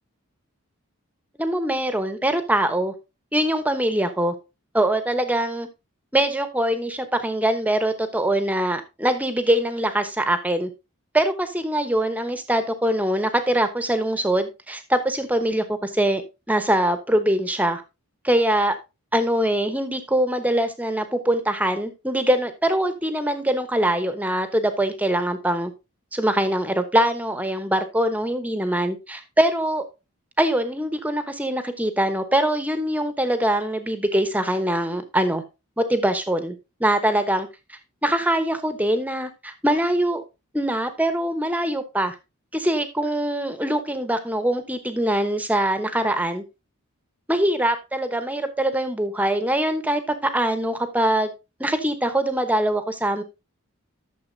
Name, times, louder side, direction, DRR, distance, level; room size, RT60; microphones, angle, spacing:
voice 1, 1.4-2.9 3.3-4.3 4.7-5.7 6.1-10.7 11.1-16.2 16.5-17.8 18.2-18.8 19.1-25.7 26.1-29.8 30.4-35.4 35.8-36.5 36.8-40.2 40.5-42.2 42.5-46.4 47.3-51.3 51.6-53.2, right 1 dB, 5° right, 9 dB, 1.0 m, -23 dB
12.5 x 7.0 x 2.7 m, 0.26 s
head